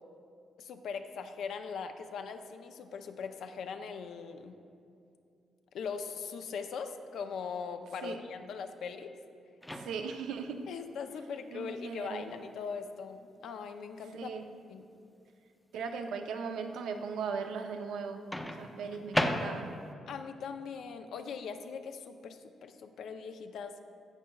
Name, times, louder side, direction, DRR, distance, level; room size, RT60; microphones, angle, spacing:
voice 1, 0.6-4.6 5.7-9.1 10.7-14.4 14.7-14.9 20.1-23.8, left 6 dB, 75° left, 7 dB, 0.5 m, -40 dB
Microwave oven, 9.6-10.3 12.3-12.5 18.3-19.9, left 1 dB, 10° left, 0.6 m, -34 dB
voice 2, 9.7-10.6 11.5-12.3 14.1-14.4 15.7-19.7, right 5 dB, 85° right, 5 dB, 0.5 m, -38 dB
16.0 x 5.5 x 2.3 m, 2.5 s
cardioid pair, 75°, 0 cm